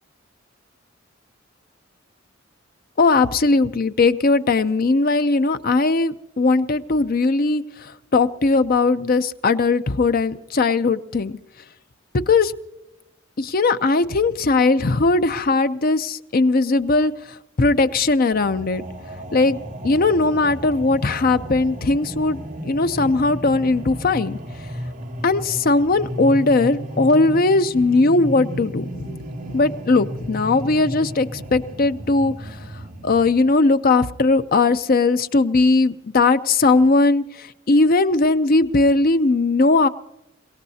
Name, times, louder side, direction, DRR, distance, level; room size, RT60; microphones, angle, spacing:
voice 1, 3.0-11.4 12.1-12.5 13.4-18.8 19.3-19.6 19.8-24.4 25.2-29.1 29.5-32.6 33.0-39.9, left 3 dB, 50° left, 11 dB, 0.6 m, -19 dB
sound 1, 18.3-33.3, equal, 45° right, 2.4 m, -33 dB
29.0 x 17.5 x 2.8 m, 0.90 s
head